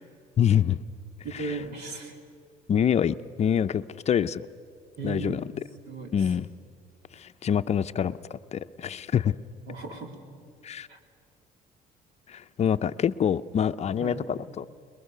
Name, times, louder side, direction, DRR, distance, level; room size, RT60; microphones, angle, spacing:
voice 1, 0.4-0.8 1.3-1.5 2.7-4.5 5.0-5.4 6.1-6.5 7.1-9.4 10.6-10.9 12.3-14.7, left 8 dB, 40° left, 12 dB, 0.5 m, -26 dB
voice 2, 1.2-2.2 5.0-5.4 5.9-6.3 9.7-10.1 10.9-11.0 14.0-14.2, right 3 dB, 75° right, 4 dB, 3.2 m, -36 dB
27.0 x 21.5 x 6.7 m, 2.2 s
cardioid pair, 110°, 17 cm